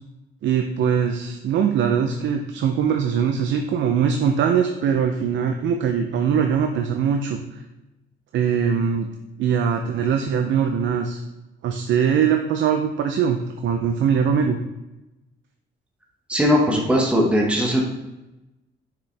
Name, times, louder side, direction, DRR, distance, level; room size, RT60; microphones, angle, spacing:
voice 1, 0.4-7.4 8.3-9.1 9.4-11.2 11.6-14.6, right 7 dB, 70° right, 4 dB, 0.6 m, -21 dB
voice 2, 16.3-17.9, equal, 5° right, -1 dB, 1.2 m, -19 dB
6.1 x 5.0 x 3.3 m, 0.99 s
cardioid pair, 90°, 20 cm